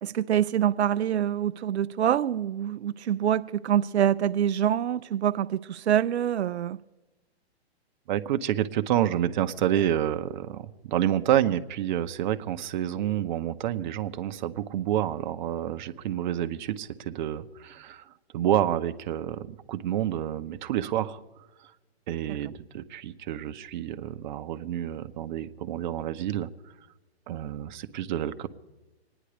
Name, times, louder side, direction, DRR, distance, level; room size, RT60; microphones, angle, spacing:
voice 1, 0.0-6.8, right 10 dB, 85° right, 0.5 m, -25 dB
voice 2, 8.1-18.1 18.3-21.2 21.6-21.7 22.1-26.5 27.3-28.5, right 11 dB, 45° right, 0.8 m, -28 dB
24.5 x 10.0 x 5.0 m
hypercardioid pair, 135°, 32 cm